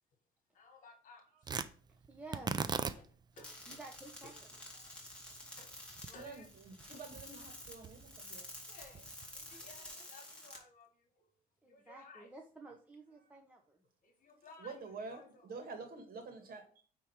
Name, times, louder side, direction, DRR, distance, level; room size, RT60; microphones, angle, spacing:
voice 1, 0.5-1.7 2.8-3.8 4.2-4.3 4.7-5.0 5.6-5.7 6.0-6.5 6.9-7.1 8.7-11.3 11.6-12.3 12.7-12.8 14.0-15.5, left 3 dB, 50° left, 1.6 m, -58 dB
Tearing, 1.4-9.8, right 5 dB, 25° right, 0.5 m, -43 dB
voice 2, 2.0-2.5 3.7-4.3 11.6-13.8, right 2 dB, 10° right, 0.9 m, -52 dB
sound 1, 3.4-10.6, left 1 dB, 5° left, 2.6 m, -51 dB
voice 3, 6.9-8.5 14.6-16.8, right 4 dB, 60° right, 2.2 m, -47 dB
9.2 x 3.6 x 4.7 m
cardioid pair, 110°, 17 cm